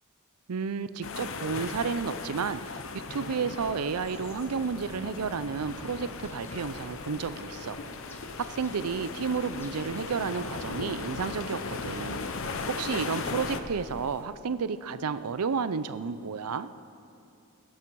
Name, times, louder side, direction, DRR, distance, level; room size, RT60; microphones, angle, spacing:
voice 1, 0.5-2.8 3.1-7.8 8.4-16.7, right 5 dB, 85° right, 13 dB, 0.5 m, -32 dB
sound 1, 1.0-13.6, left 4 dB, 60° left, 0.7 m, -37 dB
sound 2, 3.9-14.3, equal, 10° left, 1.1 m, -49 dB
20.5 x 11.0 x 4.7 m, 2.5 s
head